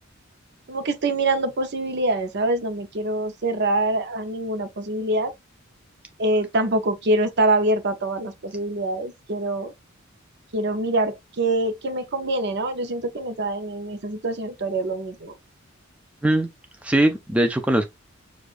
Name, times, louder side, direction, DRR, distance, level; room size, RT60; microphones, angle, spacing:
voice 1, 0.7-5.3 6.2-9.7 10.5-15.4, right 2 dB, 50° right, 0.7 m, -25 dB
voice 2, 16.8-17.9, right 1 dB, 5° right, 0.3 m, -20 dB
6.4 x 2.4 x 2.5 m
head